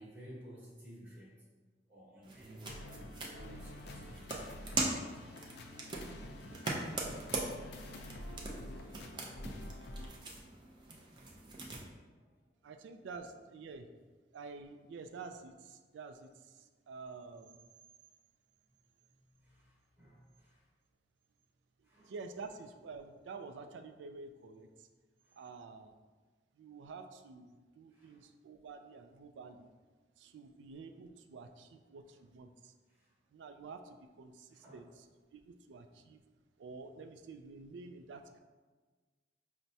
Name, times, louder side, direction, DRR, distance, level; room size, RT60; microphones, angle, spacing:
voice 1, 0.0-1.4 1.9-5.1 8.7-9.2 12.2-12.3 19.3-20.7 21.8-22.1 25.2-25.5 27.9-28.2 32.9-33.1 34.5-34.8, right 1 dB, 10° right, -9 dB, 0.9 m, -55 dB
sound 1, 2.2-11.8, right 2 dB, 25° right, 0.4 m, -41 dB
sound 2, 2.6-10.1, left 1 dB, 65° left, 0.4 m, -48 dB
voice 2, 12.6-13.9 14.3-17.6 22.1-24.9 25.4-25.9 26.6-29.7 30.2-32.7 33.3-34.9 35.3-36.2 36.6-38.4, right 4 dB, 90° right, 7 dB, 0.3 m, -49 dB
5.7 x 2.1 x 2.7 m, 1.4 s
head